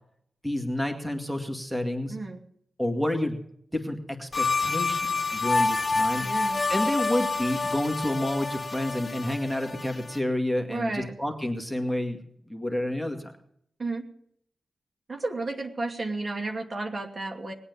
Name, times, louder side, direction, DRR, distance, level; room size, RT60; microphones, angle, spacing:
voice 1, 0.4-2.2 2.8-3.4 3.7-6.3 6.7-12.2 12.5-13.3, left 1 dB, 5° right, 4 dB, 2.1 m, -29 dB
voice 2, 2.1-2.4 6.2-6.6 10.7-11.1 13.8-14.0 15.1-17.5, right 2 dB, 50° right, 3 dB, 2.5 m, -32 dB
Starry Night, 4.3-10.2, left 3 dB, 40° left, 1.4 m, -28 dB
20.0 x 8.7 x 6.9 m, 0.69 s
cardioid pair, 70°, 0 cm